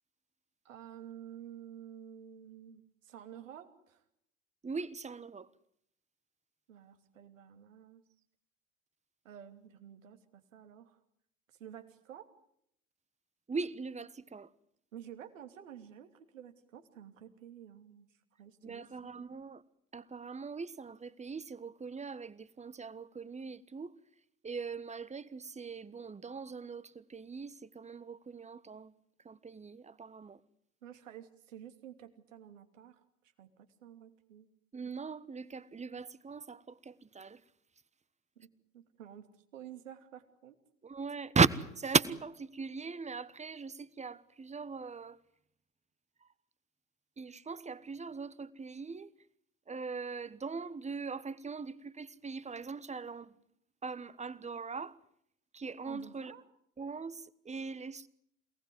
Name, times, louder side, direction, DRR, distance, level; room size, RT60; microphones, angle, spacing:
voice 1, 0.6-4.0 6.7-8.0 9.2-11.0 11.6-12.3 14.9-18.1 18.4-19.3 30.8-33.0 33.4-34.5 38.4-40.6 55.8-56.4, right 9 dB, 75° right, 2.9 m, -51 dB
voice 2, 4.6-5.5 13.5-14.5 18.6-19.6 19.9-23.9 24.4-28.9 29.2-30.4 34.7-37.4 40.8-45.2 47.2-49.1 49.7-53.3 53.8-55.0 55.5-56.3 56.8-58.1, right 5 dB, 15° right, 1.3 m, -38 dB
28.0 x 19.0 x 9.6 m
figure-of-eight pair, 65°, 39 cm